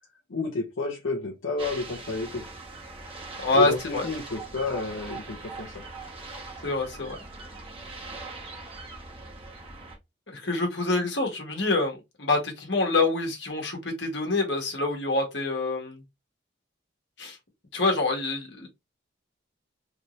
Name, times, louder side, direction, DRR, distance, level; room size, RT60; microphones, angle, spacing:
voice 1, 0.3-2.4 3.5-5.8, left 3 dB, 85° left, 0.8 m, -30 dB
sound 1, 1.6-10.0, right 3 dB, 30° right, 1.0 m, -41 dB
voice 2, 3.4-4.1 6.6-7.2 10.3-16.0 17.2-17.4 17.7-18.7, left 3 dB, 65° left, 1.4 m, -26 dB
3.4 x 2.7 x 3.0 m
head